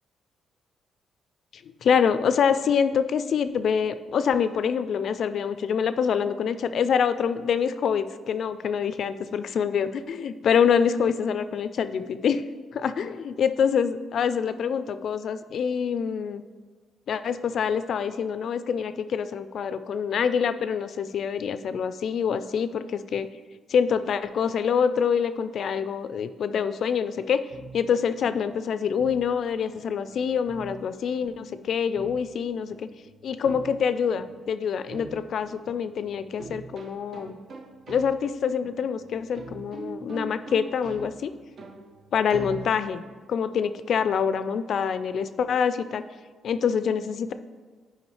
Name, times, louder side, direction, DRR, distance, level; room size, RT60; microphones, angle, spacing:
voice 1, 1.8-12.4 12.7-16.4 17.1-23.3 23.7-27.4 27.7-32.9 33.2-37.4 37.9-41.3 42.1-43.0 43.3-46.0 46.4-47.3, left 7 dB, 65° left, 12 dB, 0.3 m, -26 dB
sound 1, 27.5-43.2, right 3 dB, 55° right, 0.7 m, -44 dB
9.5 x 4.9 x 3.1 m, 1.4 s
cardioid pair, 85°, 0 cm